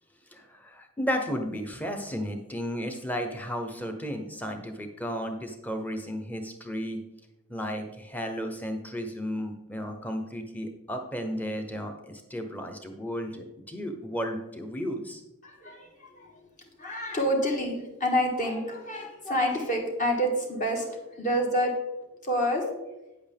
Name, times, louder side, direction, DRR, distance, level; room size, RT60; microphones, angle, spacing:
voice 1, 0.3-7.0 7.5-15.2, equal, 5° left, 5 dB, 0.9 m, -34 dB
voice 2, 15.4-16.5 16.8-21.7 22.2-23.0, equal, 35° left, 1 dB, 1.6 m, -28 dB
9.2 x 7.9 x 3.5 m, 0.98 s
head